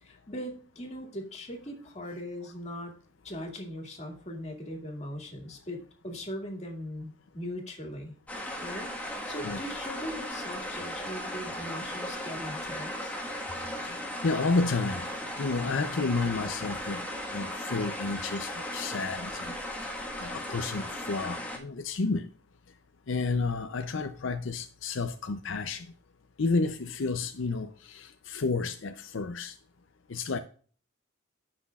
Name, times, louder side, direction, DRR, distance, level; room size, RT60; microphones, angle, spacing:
voice 1, 0.0-2.9 3.2-5.8 6.0-8.2 8.6-13.2, equal, 35° left, 2.2 m, -40 dB
sound 1, 8.3-21.6, left 1 dB, 5° left, 1.4 m, -37 dB
voice 2, 13.7-22.3 23.1-25.9 26.4-29.6 30.1-30.4, left 3 dB, 75° left, 0.6 m, -31 dB
15.0 x 6.1 x 2.4 m
head